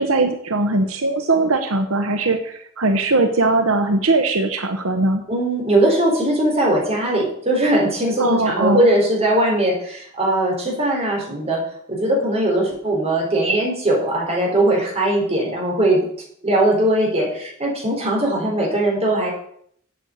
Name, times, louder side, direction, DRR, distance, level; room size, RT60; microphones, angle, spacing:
voice 1, 0.0-5.2 8.2-8.8, right 2 dB, 80° right, 6 dB, 1.0 m, -20 dB
voice 2, 5.3-11.6 11.9-16.1 16.4-19.3, right 1 dB, 30° right, -2 dB, 4.3 m, -20 dB
8.8 x 7.8 x 7.9 m, 0.66 s
head